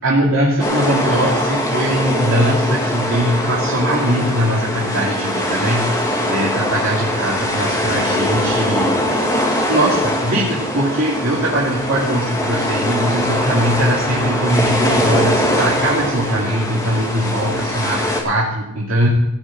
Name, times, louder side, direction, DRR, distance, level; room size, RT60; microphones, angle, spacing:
voice 1, 0.0-8.9 9.7-19.1, right 1 dB, 75° right, -7 dB, 2.8 m, -20 dB
sound 1, 0.6-18.2, equal, 15° left, 2.1 m, -21 dB
16.5 x 6.4 x 7.7 m, 0.85 s
head